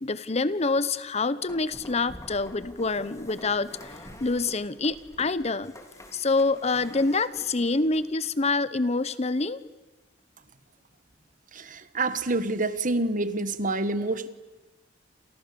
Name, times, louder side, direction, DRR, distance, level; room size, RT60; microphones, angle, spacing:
voice 1, 0.0-3.9 4.2-5.7 6.1-9.6, left 3 dB, 35° left, 16 dB, 0.9 m, -26 dB
sound 1, 1.4-8.1, left 1 dB, 15° left, 3.6 m, -47 dB
voice 2, 11.5-14.3, right 2 dB, 45° right, 12 dB, 1.5 m, -27 dB
29.5 x 28.5 x 7.0 m, 1.1 s
head